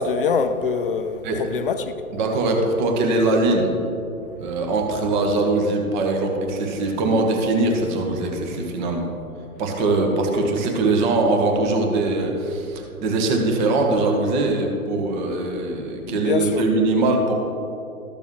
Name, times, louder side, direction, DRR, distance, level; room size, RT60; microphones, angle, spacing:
voice 1, 0.0-1.9 16.1-16.6, left 5 dB, 40° left, 0.5 m, -24 dB
voice 2, 2.1-3.7 4.4-9.1 9.6-17.3, right 2 dB, 30° right, 1.2 m, -21 dB
13.5 x 6.9 x 3.1 m
figure-of-eight pair, 125°, 44 cm